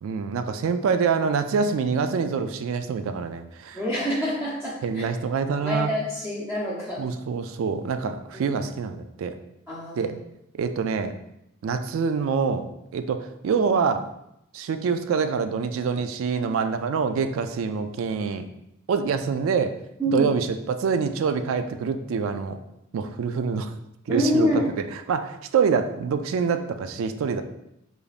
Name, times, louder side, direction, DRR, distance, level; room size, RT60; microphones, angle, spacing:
voice 1, 0.0-3.8 4.8-5.9 7.0-9.3 9.9-10.1 10.6-11.2 11.6-12.7 12.9-14.1 14.5-18.4 18.9-19.7 20.1-22.6 22.9-23.7 24.1-24.5 24.8-27.4, right 5 dB, 85° right, 9 dB, 0.3 m, -25 dB
voice 2, 3.7-5.0 5.6-7.1 8.3-8.6 9.7-10.1 20.0-20.3 24.1-24.7, equal, 15° right, -7 dB, 0.7 m, -26 dB
5.0 x 2.5 x 2.4 m, 0.83 s
head